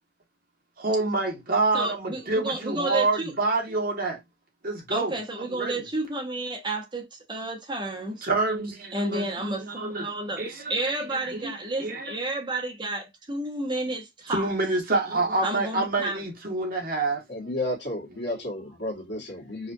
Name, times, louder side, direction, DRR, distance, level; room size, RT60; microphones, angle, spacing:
voice 1, 0.8-4.2 4.6-5.1 5.5-5.7 8.2-10.1 10.4-11.5 11.8-12.1 14.3-17.2, right 3 dB, 50° right, 1.5 m, -27 dB
voice 2, 1.7-3.3 4.9-8.3 8.9-14.5 15.4-16.2, right 2 dB, 25° right, 1.0 m, -31 dB
voice 3, 17.3-19.7, left 1 dB, 65° left, 1.7 m, -32 dB
4.8 x 2.5 x 2.6 m
head